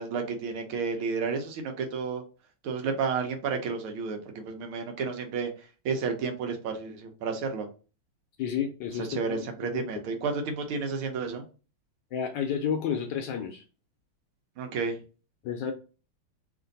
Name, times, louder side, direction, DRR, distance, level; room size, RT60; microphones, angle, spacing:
voice 1, 0.0-2.2 2.6-5.5 5.9-7.7 9.0-11.4 14.6-15.0, right 5 dB, 80° right, 4 dB, 1.6 m, -31 dB
voice 2, 8.4-9.4 9.7-9.8 12.1-13.6 15.4-15.7, left 8 dB, 70° left, 4 dB, 1.1 m, -31 dB
3.7 x 2.6 x 3.9 m, 0.34 s
omnidirectional pair, 2.4 m